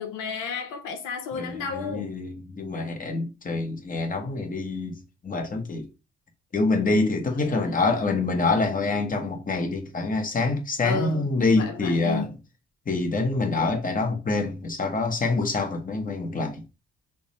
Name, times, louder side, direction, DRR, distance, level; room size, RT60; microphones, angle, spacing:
voice 1, 0.0-2.1 7.3-7.8 10.8-12.3, left 5 dB, 85° left, 0.7 m, -33 dB
voice 2, 1.3-5.9 6.5-12.3 12.9-16.6, left 3 dB, 30° left, 1.0 m, -26 dB
3.4 x 2.1 x 4.1 m
cardioid pair, 90°, 30 cm